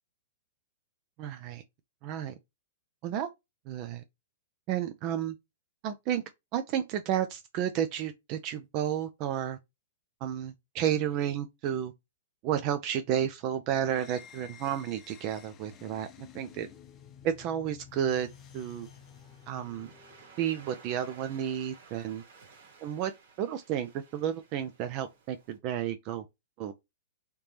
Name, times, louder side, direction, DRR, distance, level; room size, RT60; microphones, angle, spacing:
voice 1, 1.2-1.6 2.0-2.4 3.0-3.3 3.7-4.0 4.7-5.3 5.8-6.2 6.5-9.6 10.2-11.9 12.4-16.7 17.2-18.3 18.5-18.9 19.5-19.9 20.4-22.2 22.8-23.1 23.4-26.2 26.6-26.7, right 10 dB, 40° right, 0.4 m, -32 dB
sound 1, 13.8-20.4, left 8 dB, 30° left, 0.6 m, -53 dB
Waves surf, 17.9-25.6, right 5 dB, 70° right, 1.7 m, -56 dB
3.4 x 2.8 x 3.1 m
hypercardioid pair, 120°, 0 cm